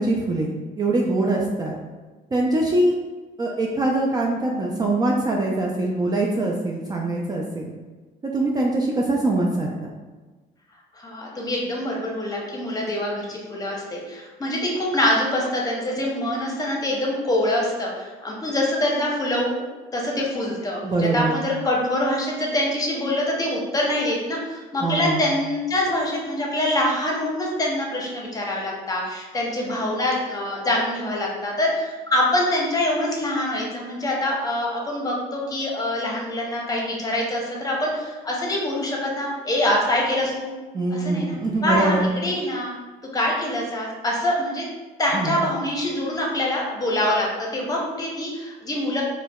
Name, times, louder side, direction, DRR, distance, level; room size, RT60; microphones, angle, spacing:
voice 1, 0.0-1.8 2.3-3.0 3.4-7.7 8.2-9.9 20.8-21.4 24.8-25.3 40.7-42.1 45.1-45.5, right 2 dB, 25° right, -2 dB, 0.3 m, -23 dB
voice 2, 10.9-19.5 19.9-40.5 40.9-41.3 41.6-42.7 43.1-44.7 45.0-49.0, left 1 dB, 20° left, -2 dB, 0.8 m, -25 dB
4.4 x 2.1 x 2.3 m, 1.3 s
cardioid pair, 110°, 17 cm